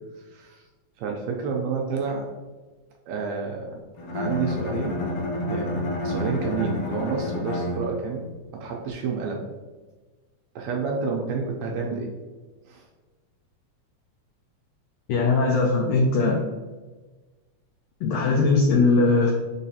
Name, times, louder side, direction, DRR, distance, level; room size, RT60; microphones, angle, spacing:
voice 1, 0.3-0.7 1.0-2.3 3.1-3.8 4.1-5.0 5.3-5.7 6.0-8.3 8.5-9.4 10.5-12.1 12.7-12.8, right 5 dB, 80° right, 0 dB, 1.6 m, -29 dB
Bowed string instrument, 4.0-8.3, left 1 dB, 70° left, 1.5 m, -29 dB
voice 2, 15.1-16.4 18.0-19.3, left 3 dB, 90° left, 1 dB, 1.4 m, -20 dB
4.5 x 3.9 x 2.7 m, 1.3 s
omnidirectional pair, 3.5 m